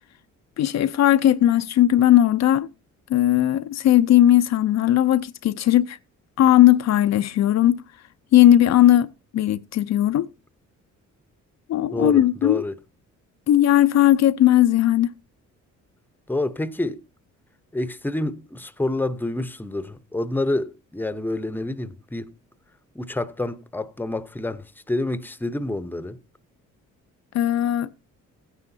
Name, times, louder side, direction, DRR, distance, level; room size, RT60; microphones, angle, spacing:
voice 1, 0.6-2.7 3.1-6.0 6.4-7.8 8.3-10.3 11.7-12.6 13.5-15.1 27.3-27.9, left 12 dB, 60° left, 0.6 m, -18 dB
voice 2, 11.9-12.7 16.3-17.0 17.7-22.3 22.9-26.2, left 2 dB, 5° left, 0.8 m, -28 dB
16.0 x 9.8 x 2.7 m
cardioid pair, 90°, 30 cm